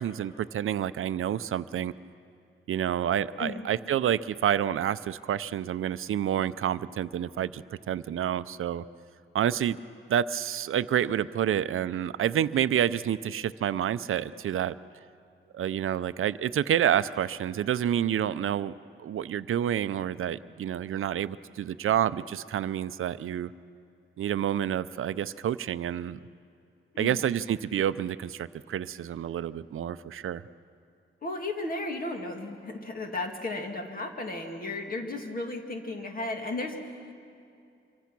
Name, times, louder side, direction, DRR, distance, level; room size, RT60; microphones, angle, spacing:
voice 1, 0.0-1.9 2.7-8.8 9.3-9.8 10.1-14.7 15.5-18.7 19.0-23.5 24.2-26.2 27.0-30.4, right 10 dB, 75° right, 14 dB, 0.5 m, -28 dB
voice 2, 31.2-36.9, left 2 dB, 45° left, 3 dB, 2.2 m, -34 dB
26.0 x 23.5 x 6.0 m, 2.5 s
wide cardioid pair, 175°, 21 cm